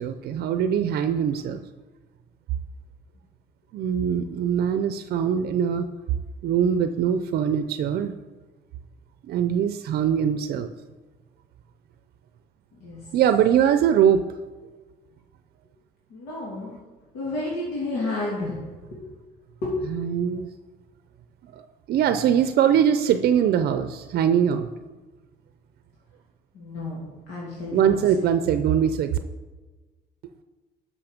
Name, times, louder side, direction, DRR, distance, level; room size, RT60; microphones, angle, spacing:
voice 1, 0.0-1.6 3.7-5.9 6.4-8.1 9.3-10.7 13.1-14.2 19.9-20.5 21.5-21.6 21.9-24.7 27.7-29.1, right 8 dB, 65° right, 9 dB, 0.6 m, -22 dB
voice 2, 16.1-16.8 17.1-18.6 18.9-19.0 19.6-19.8 26.5-27.0 27.3-28.0, left 2 dB, 90° left, -6 dB, 2.6 m, -31 dB
12.0 x 6.3 x 5.1 m, 1.3 s
cardioid pair, 110°, 17 cm